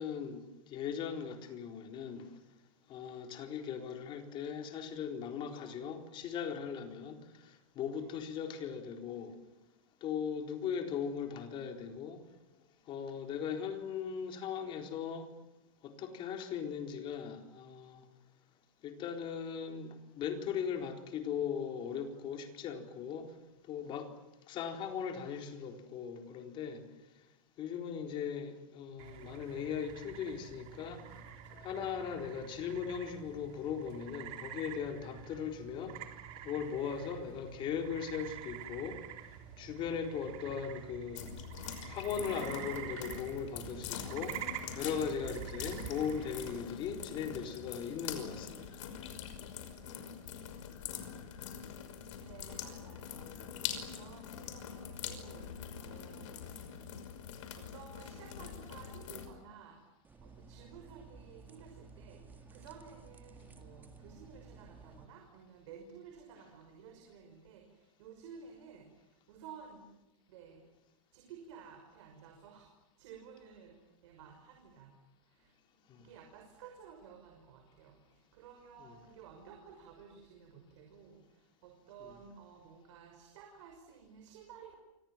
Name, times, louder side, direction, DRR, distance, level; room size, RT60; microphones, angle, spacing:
voice 1, 0.0-2.3 2.9-9.3 10.0-12.2 12.9-15.3 15.8-18.1 18.8-23.3 23.7-24.1 24.5-26.8 27.6-36.0 36.4-39.0 39.6-41.2 41.9-44.4 44.7-48.8 75.9-76.1 78.8-78.9, left 7 dB, 30° left, 5 dB, 4.0 m, -39 dB
sound 1, 29.0-46.6, right 10 dB, 35° right, 3.3 m, -48 dB
voice 2, 31.0-31.5 41.2-44.2 44.7-44.9 45.4-45.7 52.2-55.5 55.8-56.9 57.6-59.8 60.2-69.8 70.3-70.6 71.1-72.7 73.0-74.9 75.3-75.5 76.0-84.7, right 7 dB, 60° right, 3 dB, 5.9 m, -54 dB
sound 2, 41.1-59.3, left 8 dB, 60° left, 5.7 m, -44 dB
sound 3, 60.0-65.0, right 4 dB, 10° right, 1.7 m, -55 dB
29.0 x 26.0 x 7.5 m, 0.97 s
supercardioid pair, 160°, 18 cm